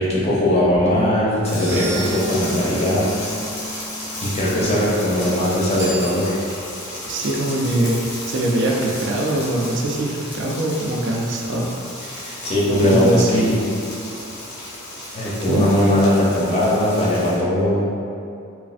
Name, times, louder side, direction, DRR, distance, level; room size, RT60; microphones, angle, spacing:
voice 1, 0.0-3.1 4.2-6.4 12.4-13.6 15.1-17.9, left 1 dB, 30° left, -7 dB, 0.6 m, -19 dB
sound 1, 1.4-5.7, right 3 dB, 90° left, 1.3 m, -34 dB
sound 2, 1.4-17.4, left 1 dB, 70° left, 0.8 m, -34 dB
Bicycle bell, 5.7-6.9, right 2 dB, 10° right, 0.6 m, -34 dB
voice 2, 7.0-11.7 12.0-12.5 12.8-13.5 15.4-15.6, right 1 dB, 60° right, -1 dB, 0.4 m, -22 dB
3.1 x 2.4 x 2.4 m, 2.6 s
head